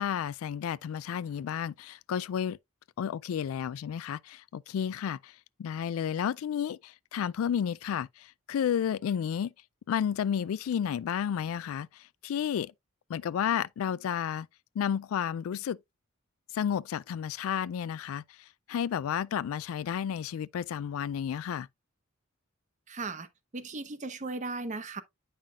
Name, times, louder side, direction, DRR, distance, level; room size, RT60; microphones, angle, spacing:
voice 1, 0.0-2.6 3.0-5.3 5.6-8.1 8.5-9.5 9.9-11.9 12.2-12.7 13.1-14.5 14.8-15.8 16.5-18.2 18.7-21.7, left 8 dB, 85° left, 0.3 m, -31 dB
voice 2, 22.9-23.3 23.5-25.0, right 3 dB, 35° right, 0.8 m, -36 dB
8.8 x 5.7 x 2.4 m
head